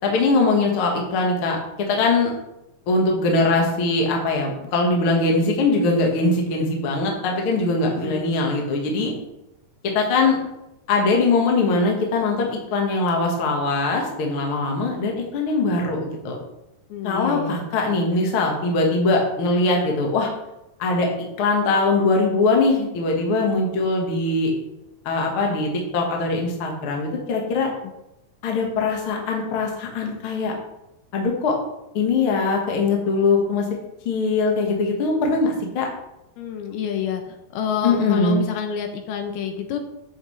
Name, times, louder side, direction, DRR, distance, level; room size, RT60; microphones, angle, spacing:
voice 1, 0.0-2.3 2.9-9.1 9.9-10.4 10.9-16.4 17.0-20.3 20.8-21.1 21.4-24.5 25.0-27.7 28.4-30.5 31.1-31.6 31.9-33.6 34.0-35.9 37.8-38.4, left 3 dB, 55° left, 0 dB, 1.5 m, -21 dB
voice 2, 7.9-8.3 16.9-17.6 36.4-39.8, left 8 dB, 75° left, 5 dB, 2.5 m, -28 dB
11.0 x 7.2 x 3.2 m, 0.90 s
omnidirectional pair, 4.8 m